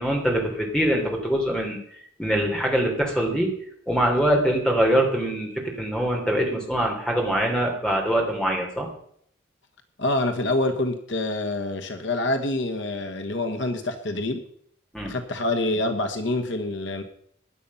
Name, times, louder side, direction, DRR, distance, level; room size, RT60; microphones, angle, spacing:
voice 1, 0.0-1.8 2.2-3.5 3.9-8.9 14.9-15.1, right 1 dB, 5° left, 0 dB, 3.4 m, -23 dB
voice 2, 10.0-14.4 15.1-17.0, left 2 dB, 65° left, 6 dB, 1.3 m, -26 dB
16.0 x 10.5 x 5.6 m, 0.65 s
head